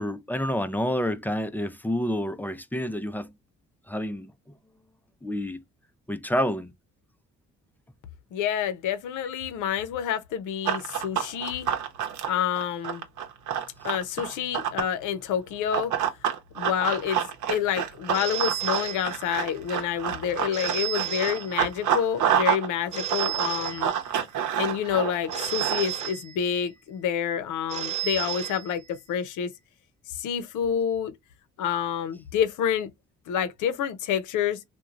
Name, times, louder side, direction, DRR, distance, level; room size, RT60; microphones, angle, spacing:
voice 1, 0.0-3.3 3.9-4.3 5.2-5.6 6.1-6.7, equal, 5° left, 0.3 m, -28 dB
voice 2, 8.3-11.7 12.3-13.0 13.8-15.9 16.6-23.9 24.6-29.5 30.1-31.1 31.6-32.9 33.3-34.6, left 9 dB, 85° left, 0.6 m, -28 dB
Run, 10.6-14.9 15.7-22.7 22.9-26.1, right 9 dB, 80° right, 0.8 m, -28 dB
Telephone, 18.1-19.6 20.5-22.0 22.9-24.4 25.3-26.8 27.7-29.2, right 10 dB, 20° right, 0.8 m, -33 dB
3.0 x 2.2 x 2.3 m
cardioid pair, 90°, 30 cm